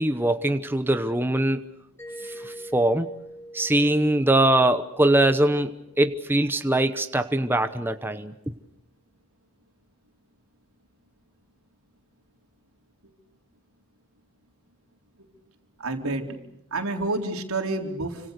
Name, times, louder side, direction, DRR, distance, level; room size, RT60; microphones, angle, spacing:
voice 1, 0.0-1.6 2.2-3.1 3.5-8.3, right 1 dB, 10° right, 9 dB, 1.0 m, -22 dB
Mallet percussion, 2.0-6.6, equal, 10° left, 6.7 m, -44 dB
voice 2, 15.8-16.4 16.7-18.2, right 2 dB, 90° right, 4 dB, 4.0 m, -28 dB
30.0 x 26.0 x 6.7 m, 0.77 s
head